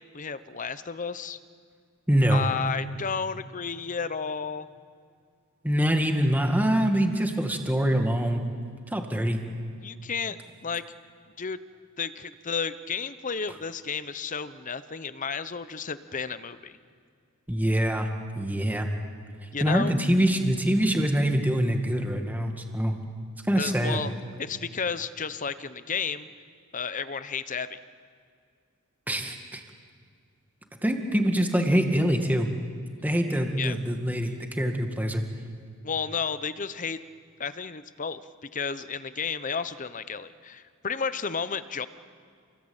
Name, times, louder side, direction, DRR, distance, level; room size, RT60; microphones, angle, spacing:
voice 1, 0.1-1.4 2.3-4.7 9.8-10.8 11.4-11.6 12.0-16.8 19.5-19.9 23.5-24.1 24.4-26.3 26.7-27.8 33.6-33.8 35.8-37.0 37.4-41.9, left 6 dB, 35° left, 13 dB, 0.9 m, -32 dB
voice 2, 2.1-2.4 5.6-8.4 8.9-9.4 17.5-18.1 18.3-18.9 19.6-23.0 23.4-24.0 29.1-29.6 30.8-32.5 33.0-35.2, equal, 10° right, 4 dB, 2.0 m, -24 dB
29.0 x 21.0 x 8.9 m, 2.2 s
head